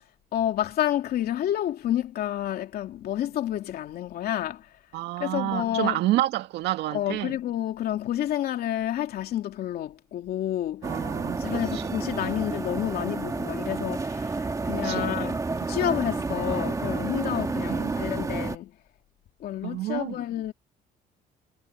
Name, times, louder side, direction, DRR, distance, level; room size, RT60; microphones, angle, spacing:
voice 1, 0.3-4.7 5.2-6.0 6.9-11.0 11.4-18.7 19.4-20.5, left 12 dB, 65° left, 2.8 m, -29 dB
voice 2, 4.9-7.4 10.8-12.0 14.8-15.1 17.7-18.0 19.6-20.2, right 15 dB, 85° right, 1.9 m, -29 dB
sound 1, 10.8-18.6, right 3 dB, 20° right, 1.6 m, -30 dB
cardioid pair, 110°, 17 cm